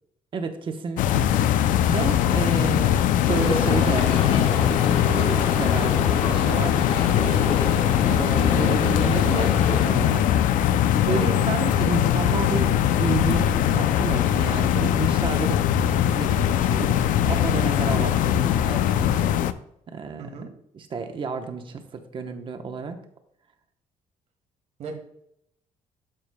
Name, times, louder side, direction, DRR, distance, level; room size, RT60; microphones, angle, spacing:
voice 1, 0.3-1.3 1.6-3.0 3.3-4.7 5.0-7.0 8.1-10.3 11.0-17.0 17.3-19.1 19.9-20.3 20.7-23.0, right 5 dB, 40° right, 6 dB, 0.9 m, -31 dB
sound 1, 1.0-19.5, left 10 dB, 80° left, 0.4 m, -21 dB
sound 2, 3.3-9.9, left 4 dB, 45° left, 1.1 m, -29 dB
voice 2, 7.1-7.5 11.1-11.3 20.2-20.5 24.8-25.0, right 5 dB, 55° right, 4 dB, 1.5 m, -37 dB
12.0 x 4.9 x 2.2 m, 0.74 s
cardioid pair, 145°, 14 cm